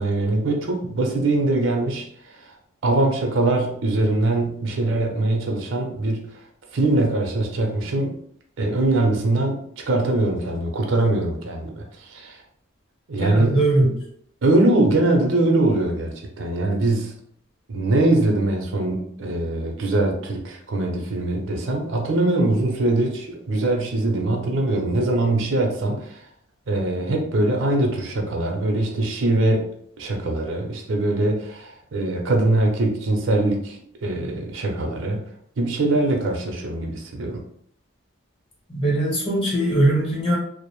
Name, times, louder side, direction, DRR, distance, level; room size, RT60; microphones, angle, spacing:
voice 1, 0.0-2.0 2.8-6.3 6.7-8.1 8.6-12.4 13.1-13.7 14.4-17.1 17.7-26.2 26.7-29.7 30.0-35.2 35.6-37.4, right 2 dB, 75° right, 2 dB, 0.5 m, -22 dB
voice 2, 13.2-14.0 38.7-40.4, right 1 dB, 25° left, -4 dB, 0.8 m, -20 dB
2.5 x 2.0 x 2.9 m, 0.66 s
head